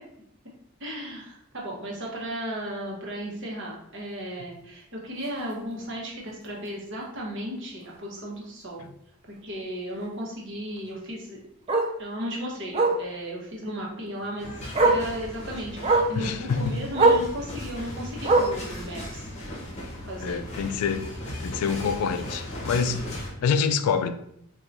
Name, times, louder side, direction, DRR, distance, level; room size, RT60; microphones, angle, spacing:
voice 1, 0.8-8.8 9.4-11.4 12.0-14.5 14.8-19.2 20.1-20.4, equal, 55° right, -2 dB, 0.9 m, -35 dB
Bark, 5.2-5.4 5.8-5.9 6.3-6.4 6.7-6.8 8.2-8.3 10.8-10.9 11.7-11.9 12.7-13.0 14.2-14.3 14.7-15.1 15.8-16.2 16.9-17.3 18.2-18.7 19.6-19.7, right 2 dB, 25° right, 0.3 m, -21 dB
sound 1, 14.4-23.3, left 1 dB, 30° left, 0.7 m, -37 dB
voice 2, 16.2-16.9 20.2-21.1 21.4-23.1 23.4-24.1, left 6 dB, 90° left, 11 dB, 0.3 m, -26 dB
4.4 x 2.3 x 2.6 m, 0.73 s
head